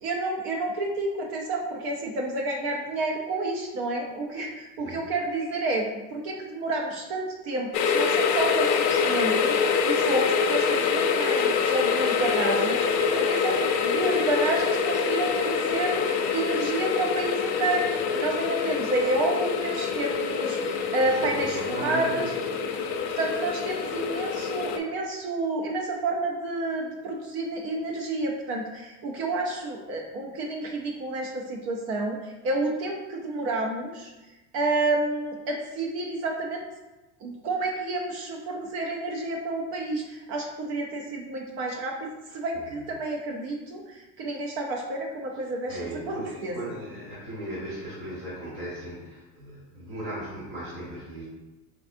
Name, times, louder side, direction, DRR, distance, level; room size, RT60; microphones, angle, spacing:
voice 1, 0.0-22.3 23.2-34.1 34.5-36.6 37.2-45.8 46.1-46.6, right 2 dB, 60° right, 0 dB, 0.7 m, -30 dB
sound 1, 7.7-24.8, left 6 dB, 40° left, 0.4 m, -25 dB
voice 2, 21.0-22.9 42.5-42.7 45.7-51.2, right 1 dB, 45° right, -7 dB, 1.4 m, -37 dB
4.7 x 2.4 x 2.6 m, 1.1 s
hypercardioid pair, 90°, 45 cm